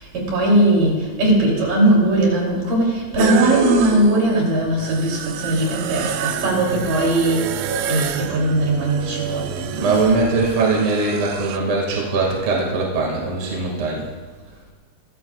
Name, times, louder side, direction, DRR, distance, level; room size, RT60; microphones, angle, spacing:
voice 1, 0.0-7.5 7.9-9.7, right 1 dB, 65° right, -3 dB, 4.7 m, -19 dB
sound 1, 3.2-11.6, right 10 dB, 85° right, 2.3 m, -28 dB
voice 2, 9.7-14.1, right 3 dB, 45° right, -2 dB, 2.7 m, -21 dB
23.0 x 14.5 x 2.4 m, 1.5 s
omnidirectional pair, 4.0 m